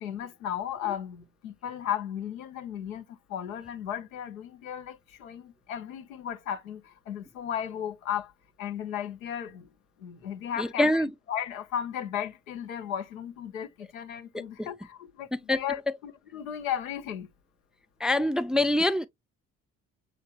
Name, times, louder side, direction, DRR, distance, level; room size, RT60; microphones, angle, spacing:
voice 1, 0.0-8.3 8.6-9.7 10.0-11.0 11.3-17.3, left 9 dB, 85° left, 0.7 m, -35 dB
voice 2, 10.6-11.1 14.3-14.7 15.5-15.6 18.0-19.1, left 1 dB, ahead, 0.4 m, -25 dB
7.0 x 3.1 x 2.3 m
hypercardioid pair, 45°, 40 cm